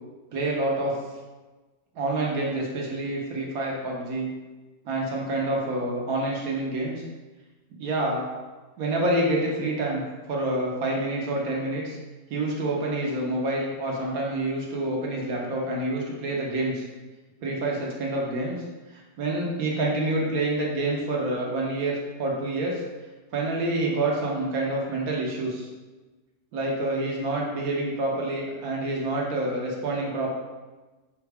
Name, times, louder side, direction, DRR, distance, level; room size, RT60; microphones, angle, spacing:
voice 1, 0.3-1.0 2.0-4.3 4.8-7.0 7.8-8.3 8.8-10.0 10.3-12.0 12.3-16.8 17.4-18.6 18.9-22.8 23.3-25.7 26.5-30.3, right 2 dB, 70° right, -2 dB, 1.2 m, -27 dB
5.4 x 2.2 x 3.3 m, 1.2 s
omnidirectional pair, 1.7 m